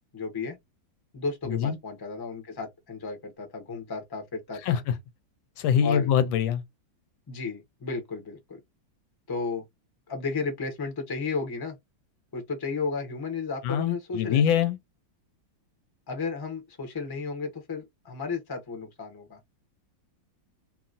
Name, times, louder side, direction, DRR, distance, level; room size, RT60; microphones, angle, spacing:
voice 1, 0.1-0.6 1.1-4.8 5.8-6.1 7.3-8.6 9.3-9.6 10.1-11.8 12.3-14.7 16.1-19.4, left 4 dB, 25° left, 0.5 m, -33 dB
voice 2, 4.6-4.9 5.6-6.6 13.6-14.8, left 8 dB, 85° left, 1.4 m, -24 dB
3.0 x 2.7 x 2.5 m
omnidirectional pair, 2.1 m